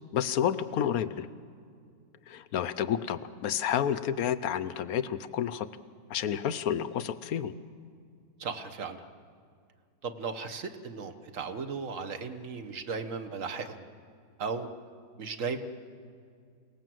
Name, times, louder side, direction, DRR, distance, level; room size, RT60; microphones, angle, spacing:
voice 1, 0.1-1.3 2.3-5.7 6.1-7.5, left 9 dB, 65° left, 14 dB, 0.9 m, -30 dB
voice 2, 8.4-9.0 10.0-13.8 14.4-14.7 15.2-15.6, right 5 dB, 45° right, 7 dB, 1.4 m, -36 dB
28.0 x 19.0 x 7.7 m, 2.3 s
omnidirectional pair, 2.2 m